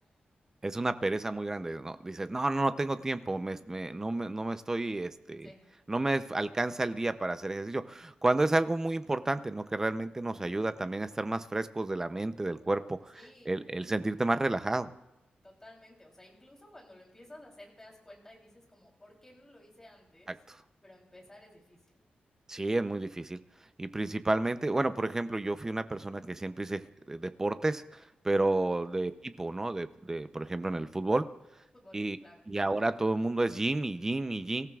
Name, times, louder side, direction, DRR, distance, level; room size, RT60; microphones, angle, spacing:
voice 1, 0.6-5.5 5.9-13.1 13.5-14.9 20.3-20.6 22.5-23.4 23.8-31.3 31.9-32.2 32.5-34.7, right 2 dB, 15° right, 11 dB, 0.6 m, -31 dB
voice 2, 13.1-13.6 15.4-20.3 20.8-21.8 28.5-28.8 31.7-32.4, left 1 dB, 15° left, -1 dB, 3.3 m, -54 dB
24.5 x 14.0 x 2.4 m, 0.96 s
wide cardioid pair, 180°, 3 cm